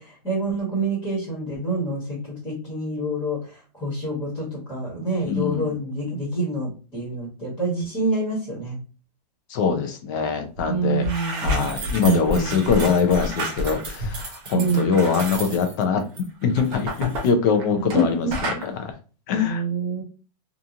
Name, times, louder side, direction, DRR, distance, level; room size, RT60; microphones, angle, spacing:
voice 1, 0.0-8.8 10.7-11.7 12.0-12.9 14.5-14.9 17.8-18.3 19.3-20.0, right 2 dB, 10° left, -6 dB, 1.3 m, -27 dB
voice 2, 5.3-5.7 9.5-11.1 11.4-16.0 16.4-18.9 19.3-19.6, left 6 dB, 25° left, 6 dB, 0.4 m, -23 dB
sound 1, 10.6-10.7 10.9-18.0 18.3-18.7, right 1 dB, 20° right, 0.6 m, -30 dB
2.8 x 2.4 x 2.4 m, 0.35 s
hypercardioid pair, 160°, 21 cm